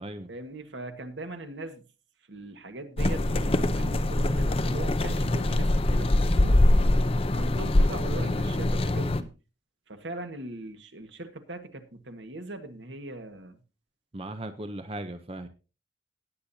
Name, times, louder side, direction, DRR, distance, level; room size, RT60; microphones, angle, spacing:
voice 1, 0.3-1.8 2.3-6.6 7.3-9.3 9.9-13.6, right 2 dB, 80° right, 6 dB, 1.6 m, -40 dB
sound 1, 3.0-9.2, left 1 dB, 30° left, 0.6 m, -23 dB
voice 2, 14.1-15.5, right 1 dB, 30° right, 9 dB, 0.7 m, -37 dB
18.5 x 8.6 x 2.8 m, 0.33 s
head